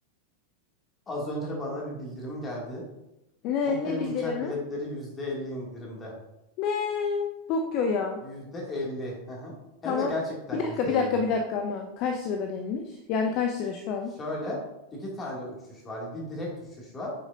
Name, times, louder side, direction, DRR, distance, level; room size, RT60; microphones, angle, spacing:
voice 1, 1.1-2.9 3.7-6.1 8.2-9.5 9.8-11.2 14.2-14.6 14.9-16.5 16.8-17.1, left 1 dB, 20° left, -3 dB, 2.3 m, -34 dB
voice 2, 3.4-4.6 6.6-8.3 9.8-10.1 10.5-14.2, left 5 dB, 40° left, 4 dB, 0.6 m, -28 dB
7.9 x 6.0 x 2.6 m, 0.92 s
figure-of-eight pair, 90°, 0 cm